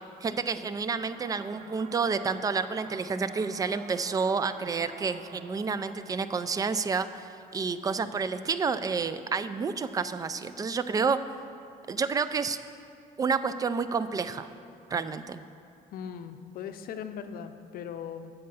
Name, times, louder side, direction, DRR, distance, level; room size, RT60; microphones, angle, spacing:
voice 1, 0.2-11.2 11.9-12.6 13.2-14.5 14.9-15.4, right 5 dB, 20° right, 13 dB, 0.3 m, -29 dB
sound 1, 1.0-8.5, right 6 dB, 65° right, 0.6 m, -50 dB
voice 2, 15.9-18.3, left 8 dB, 60° left, 9 dB, 0.6 m, -39 dB
7.6 x 5.5 x 6.8 m, 2.5 s
cardioid pair, 110°, 17 cm